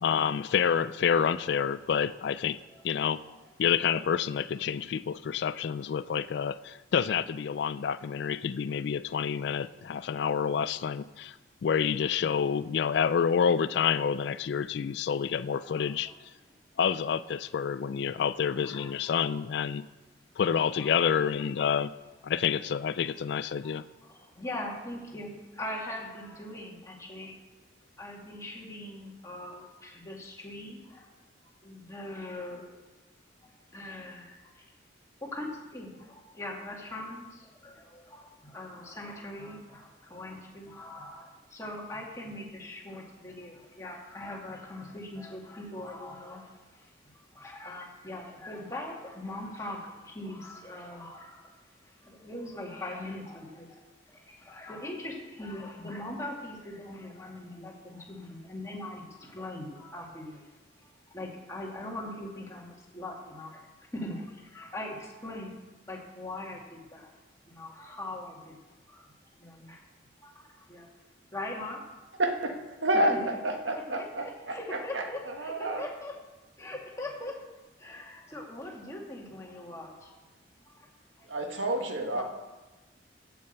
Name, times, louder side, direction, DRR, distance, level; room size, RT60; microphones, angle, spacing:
voice 1, 0.0-2.6 2.8-3.2 3.6-11.3 11.6-16.1 16.8-19.8 20.4-21.9 22.2-23.8, left 7 dB, 65° left, 16 dB, 0.3 m, -28 dB
voice 2, 15.7-16.1 18.6-19.4 20.7-21.3 23.6-23.7 24.4-27.3 28.0-31.0 31.6-32.7 33.7-34.3 35.3-35.9 36.4-37.2 37.6-46.4 47.4-49.8 50.1-51.3 52.1-53.7 54.5-59.0 59.3-60.4 61.1-63.5 63.9-64.2 64.5-65.0 65.2-65.5 65.9-67.1 67.5-68.5 69.4-69.8 70.2-70.3 70.7-70.9 71.3-71.8 72.9-76.1 76.6-77.4 77.8-79.9 82.1-82.2, left 1 dB, 15° left, -1 dB, 1.9 m, -41 dB
voice 3, 72.2-72.5 72.8-75.0 75.4-75.8 81.3-82.2, right 1 dB, 90° right, 4 dB, 1.4 m, -29 dB
8.5 x 7.6 x 7.9 m, 1.2 s
head